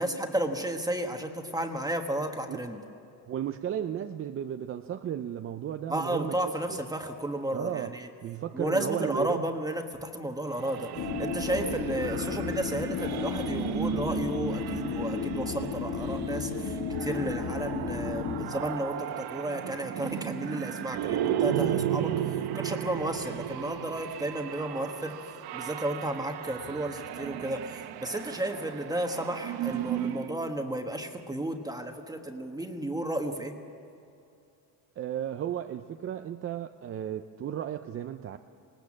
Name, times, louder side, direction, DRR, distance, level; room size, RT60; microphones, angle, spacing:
voice 1, 0.0-2.8 5.9-8.1 8.5-10.9 11.2-25.2 25.5-33.6, right 1 dB, 10° right, 5 dB, 1.3 m, -33 dB
voice 2, 3.3-6.8 7.5-7.9 8.2-9.5 35.0-38.4, right 10 dB, 30° right, 8 dB, 0.5 m, -34 dB
sound 1, 10.5-30.3, right 11 dB, 60° right, 1.0 m, -35 dB
sound 2, 11.0-18.5, left 6 dB, 40° left, 2.1 m, -33 dB
20.0 x 18.5 x 7.4 m, 2.7 s
cardioid pair, 135°, 43 cm